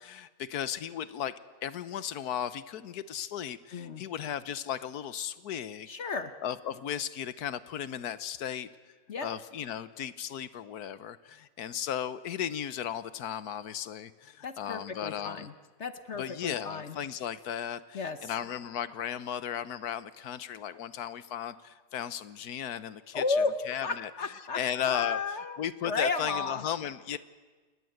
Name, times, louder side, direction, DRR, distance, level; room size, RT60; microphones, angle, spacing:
voice 1, 0.0-1.3 1.6-5.9 6.4-8.7 9.2-15.5 16.2-24.1 24.5-25.2 25.6-27.2, left 9 dB, 60° left, 14 dB, 1.4 m, -35 dB
voice 2, 3.7-4.0 5.9-6.3 9.1-9.3 14.4-15.5 15.8-17.0 17.9-18.2 23.1-23.5 23.8-24.6 24.9-25.6 25.8-26.6, left 4 dB, 45° left, 9 dB, 1.1 m, -33 dB
30.0 x 19.5 x 8.0 m, 1.4 s
omnidirectional pair, 2.0 m